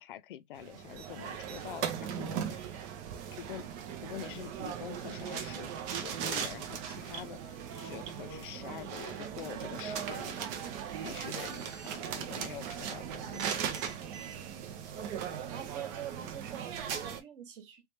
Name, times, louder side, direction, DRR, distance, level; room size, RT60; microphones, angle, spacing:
voice 1, 0.0-2.7 3.3-3.6 4.0-5.7 6.0-10.5 11.0-13.9, left 12 dB, 45° left, 0.5 m, -46 dB
sound 1, 0.6-17.2, right 8 dB, 25° right, 0.5 m, -38 dB
voice 2, 15.4-17.8, right 9 dB, 45° right, 1.3 m, -44 dB
3.3 x 3.0 x 2.9 m
hypercardioid pair, 125°, 36 cm